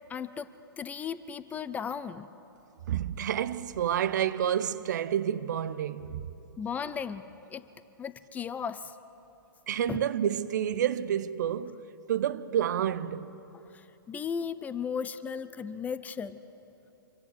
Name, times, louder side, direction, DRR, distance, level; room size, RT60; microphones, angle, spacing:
voice 1, 0.1-2.3 6.6-7.7 8.0-9.0 9.9-10.1 13.5-16.4, left 7 dB, 15° left, 0.6 m, -36 dB
voice 2, 2.9-6.3 9.7-13.3, right 10 dB, 50° right, 0.8 m, -29 dB
27.0 x 23.0 x 6.6 m
figure-of-eight pair, 115°, 12 cm